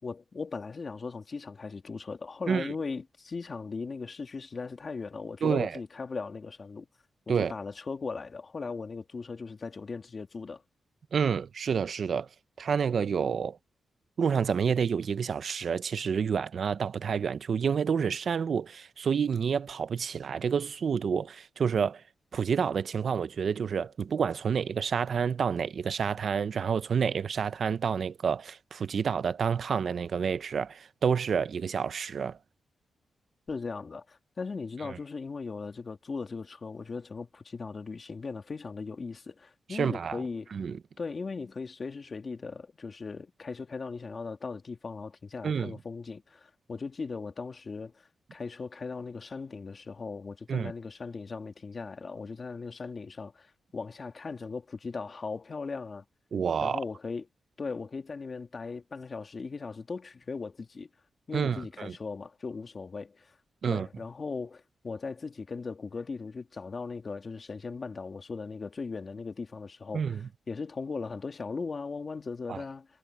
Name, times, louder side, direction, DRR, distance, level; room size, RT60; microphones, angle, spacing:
voice 1, 0.0-6.9 7.3-10.6 33.5-40.5 41.0-47.9 48.3-56.0 56.6-57.3 57.6-60.9 61.3-63.3 63.6-72.9, left 4 dB, 40° left, 2.8 m, -38 dB
voice 2, 5.4-5.8 7.3-7.5 11.1-12.3 12.6-13.6 14.2-22.0 22.3-32.4 34.8-35.0 39.7-40.2 40.5-40.8 45.4-45.7 50.5-50.7 56.3-56.8 61.3-62.0 63.6-63.9 69.9-70.3 72.5-72.6, right 6 dB, 60° right, 0.7 m, -29 dB
wide cardioid pair, 115°, 0 cm